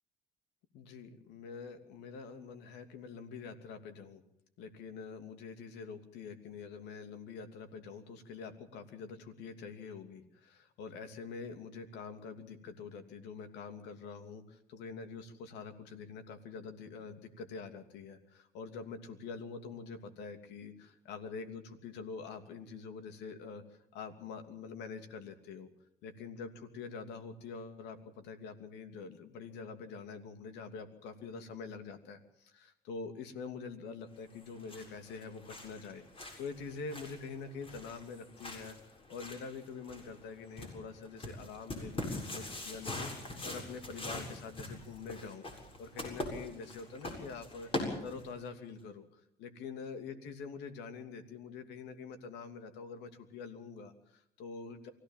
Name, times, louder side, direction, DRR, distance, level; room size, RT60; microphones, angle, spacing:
voice 1, 0.7-4.2 4.6-25.7 26.0-45.5 45.8-54.9, left 5 dB, 85° left, 7 dB, 2.9 m, -45 dB
sound 1, 34.3-48.5, left 2 dB, 35° left, 7.5 m, -43 dB
25.0 x 16.5 x 7.5 m, 0.73 s
cardioid pair, 110°, 17 cm